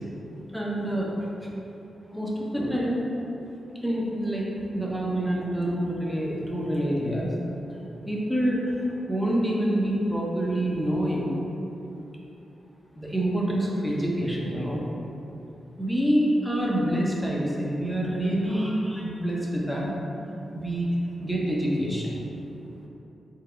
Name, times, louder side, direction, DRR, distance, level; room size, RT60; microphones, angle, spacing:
voice 1, 0.5-1.5 2.1-3.1 3.8-7.3 8.1-8.8 9.1-11.3 12.9-14.8 15.8-20.0 20.5-20.9 21.2-22.2 22.7-22.9, right 1 dB, ahead, -4 dB, 0.7 m, -27 dB
4.0 x 3.8 x 3.3 m, 2.9 s
wide cardioid pair, 120°, 0 cm